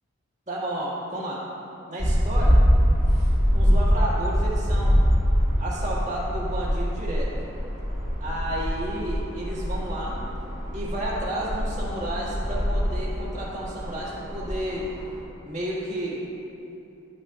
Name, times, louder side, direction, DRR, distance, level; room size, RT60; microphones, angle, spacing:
voice 1, 0.5-1.4 1.9-2.6 3.5-5.0 5.6-7.3 8.2-10.2 10.7-14.9 15.4-16.2, right 1 dB, 35° right, -6 dB, 1.9 m, -31 dB
sound 1, 2.0-15.2, equal, 20° right, 1.8 m, -24 dB
12.0 x 9.3 x 2.4 m, 2.9 s
head